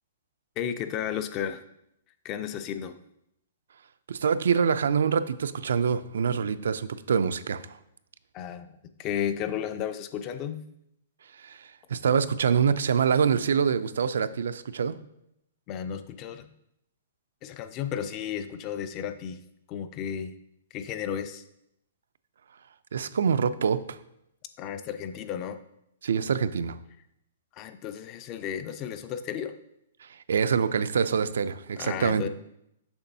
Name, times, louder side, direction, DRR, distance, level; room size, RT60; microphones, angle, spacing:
voice 1, 0.6-1.6 2.2-2.9 8.3-8.7 9.0-10.6 15.7-16.5 17.4-19.4 19.7-20.3 20.7-21.4 24.6-25.6 27.5-29.5 31.8-32.3, left 9 dB, 25° left, 10 dB, 0.3 m, -33 dB
voice 2, 4.1-7.8 11.4-15.0 22.9-24.0 26.0-26.8 30.0-32.2, right 6 dB, 80° right, 13 dB, 0.3 m, -25 dB
6.9 x 5.2 x 2.7 m, 0.79 s
hypercardioid pair, 160°, 0 cm